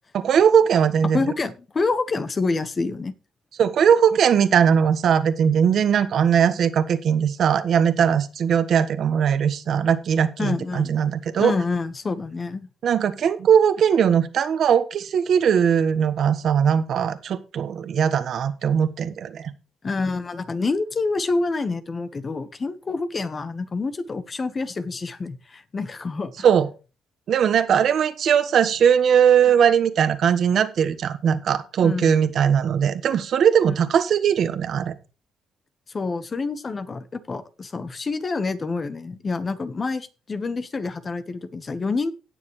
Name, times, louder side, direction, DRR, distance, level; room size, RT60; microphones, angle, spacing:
voice 1, 0.1-1.2 3.6-11.5 12.8-19.5 26.4-26.7 27.3-34.9, right 8 dB, 65° right, 11 dB, 1.4 m, -19 dB
voice 2, 1.1-3.1 10.4-10.9 11.4-12.7 19.8-26.4 31.8-32.2 33.7-33.8 35.9-42.1, left 3 dB, 35° left, 12 dB, 1.3 m, -27 dB
17.5 x 7.0 x 3.3 m, 0.32 s
cardioid pair, 90°, 0 cm